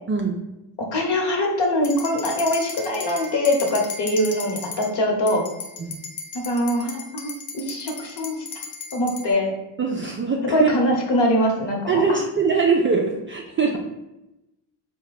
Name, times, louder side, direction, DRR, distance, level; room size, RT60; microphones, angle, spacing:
voice 1, 0.8-5.5 6.3-8.5 8.9-9.6 10.5-12.2, left 1 dB, 55° left, 1 dB, 1.2 m, -23 dB
sound 1, 1.8-4.9 5.3-9.3, left 4 dB, 85° left, 0.8 m, -35 dB
voice 2, 9.8-10.7 11.9-13.8, right 5 dB, 25° right, 0 dB, 0.4 m, -22 dB
4.1 x 2.3 x 4.0 m, 0.95 s
cardioid pair, 95°, 49 cm